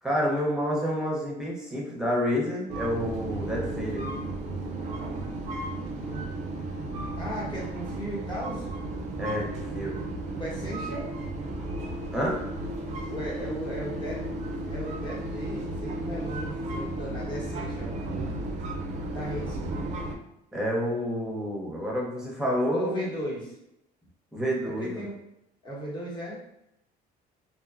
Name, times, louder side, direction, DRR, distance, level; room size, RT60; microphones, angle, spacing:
voice 1, 0.0-4.1 9.2-10.0 12.1-12.4 20.5-23.0 24.3-25.0, equal, 5° right, -3 dB, 0.7 m, -29 dB
sound 1, 2.7-20.2, right 2 dB, 45° right, 0.4 m, -34 dB
sound 2, 3.0-17.4, equal, 65° left, 0.7 m, -48 dB
voice 2, 6.1-6.4 7.1-8.7 10.3-11.1 13.1-14.2 14.7-17.9 19.1-19.6 22.7-23.6 24.6-25.1 25.6-26.4, equal, 25° left, -5 dB, 1.0 m, -36 dB
2.7 x 2.1 x 2.4 m, 0.84 s
cardioid pair, 110°, 17 cm